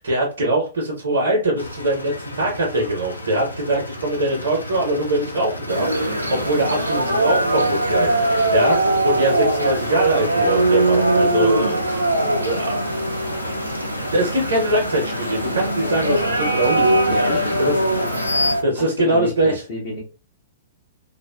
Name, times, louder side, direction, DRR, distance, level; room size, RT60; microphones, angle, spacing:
voice 1, 0.0-12.0 12.4-13.0 14.1-17.1 17.6-17.7 18.6-19.5, right 1 dB, 60° right, -2 dB, 0.8 m, -22 dB
sound 1, 1.6-18.6, left 1 dB, 80° left, 0.4 m, -31 dB
sound 2, 5.7-18.6, right 1 dB, 85° right, 0.4 m, -21 dB
voice 2, 17.1-17.8 18.7-20.0, left 2 dB, 45° left, -5 dB, 1.0 m, -30 dB
2.5 x 2.3 x 2.2 m, 0.32 s
figure-of-eight pair, 110°, 0 cm